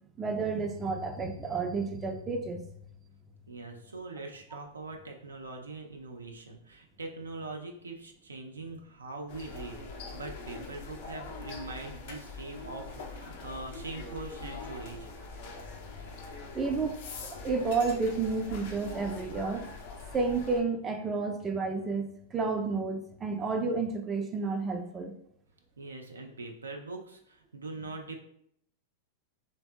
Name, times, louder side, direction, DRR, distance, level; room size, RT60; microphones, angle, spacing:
voice 1, 0.2-2.6 16.5-17.0 17.3-19.7 20.1-25.1, right 4 dB, 25° right, 4 dB, 0.4 m, -31 dB
voice 2, 3.5-15.1 25.8-28.2, right 3 dB, 90° right, 2 dB, 0.4 m, -42 dB
sound 1, 9.3-20.6, left 3 dB, 60° left, 0.5 m, -43 dB
2.8 x 2.6 x 2.2 m, 0.69 s
hypercardioid pair, 100°, 0 cm